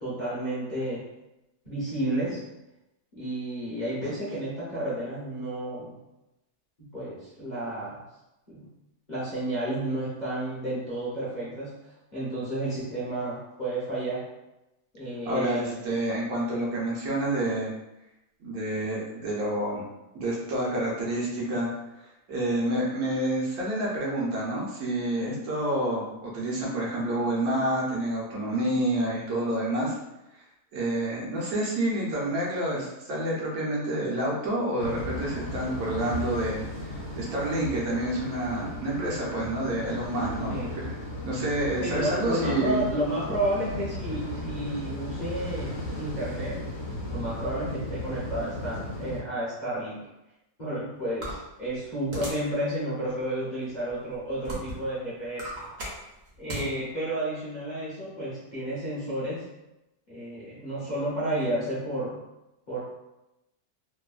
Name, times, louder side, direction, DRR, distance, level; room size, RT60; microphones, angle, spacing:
voice 1, 0.0-1.0 1.6-2.4 3.1-5.9 6.8-8.0 8.5-8.6 9.1-14.2 14.9-15.7 40.5-40.7 41.8-46.6 47.1-50.0 50.6-55.5 56.4-59.5 60.1-62.2 62.7-62.8, right 1 dB, 45° left, -10 dB, 0.6 m, -31 dB
voice 2, 15.3-17.7 18.4-19.8 20.1-21.7 22.0-30.0 30.3-30.4 30.7-41.0 41.2-42.8, right 1 dB, 70° right, -5 dB, 1.2 m, -28 dB
sound 1, 34.8-49.2, left 1 dB, 65° left, 1.1 m, -36 dB
sound 2, 51.2-52.5 53.1-53.2 53.9-54.9 55.2-56.7, right 1 dB, 55° right, 0.9 m, -36 dB
3.0 x 2.1 x 2.3 m, 0.94 s
omnidirectional pair, 1.7 m